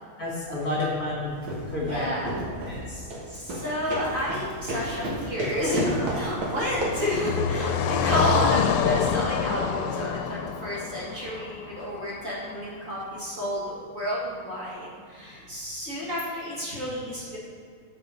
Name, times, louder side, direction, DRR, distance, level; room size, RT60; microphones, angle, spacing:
voice 1, 0.2-1.4 1.7-2.1 2.6-3.0, left 2 dB, 45° left, -5 dB, 2.3 m, -30 dB
sound 1, 1.2-7.2, right 1 dB, 65° right, 2.3 m, -33 dB
voice 2, 1.8-2.4 3.3-17.4, equal, 40° right, -6 dB, 2.0 m, -30 dB
Car passing by, 5.1-12.4, left 7 dB, 85° left, 1.5 m, -28 dB
7.4 x 7.4 x 5.1 m, 2.2 s
omnidirectional pair, 2.3 m